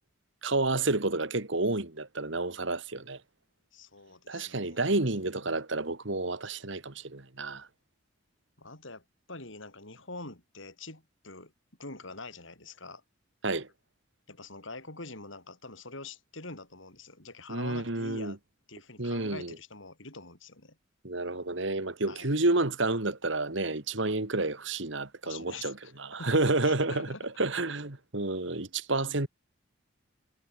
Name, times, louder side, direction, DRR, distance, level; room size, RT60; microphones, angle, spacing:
voice 1, 0.4-3.2 4.3-7.7 13.4-13.7 17.5-18.4 19.0-19.5 21.0-25.7 26.0-27.1 27.4-29.3, right 2 dB, 60° right, 2.0 m, -30 dB
voice 2, 3.7-5.6 8.6-11.5 11.8-13.0 14.3-18.4 18.7-20.8 22.1-22.3 25.2-25.9 26.2-27.3, left 3 dB, 70° left, 6.1 m, -45 dB
head